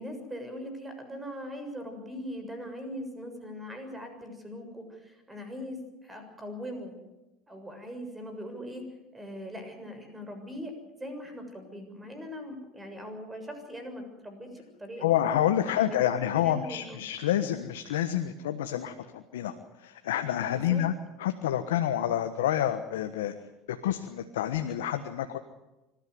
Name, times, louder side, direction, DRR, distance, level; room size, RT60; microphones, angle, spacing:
voice 1, 0.0-6.9 7.5-8.8 9.1-10.7 11.0-15.2 15.7-16.1 16.4-17.0 20.5-20.8, equal, 15° right, 6 dB, 6.9 m, -40 dB
voice 2, 15.0-19.5 19.8-20.9 21.2-23.3 23.7-25.4, left 11 dB, 85° left, 8 dB, 1.3 m, -28 dB
25.5 x 13.5 x 9.6 m, 1.0 s
hypercardioid pair, 85°, 0 cm